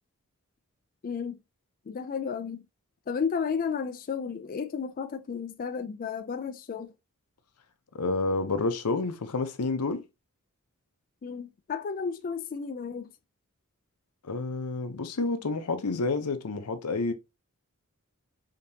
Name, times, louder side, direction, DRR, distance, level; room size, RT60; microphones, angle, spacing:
voice 1, 1.0-1.4 1.9-2.6 3.1-6.9 11.2-13.1, left 6 dB, 40° left, 0.3 m, -33 dB
voice 2, 7.9-10.0 14.2-17.1, left 3 dB, 90° left, 0.7 m, -29 dB
5.1 x 2.9 x 2.7 m
head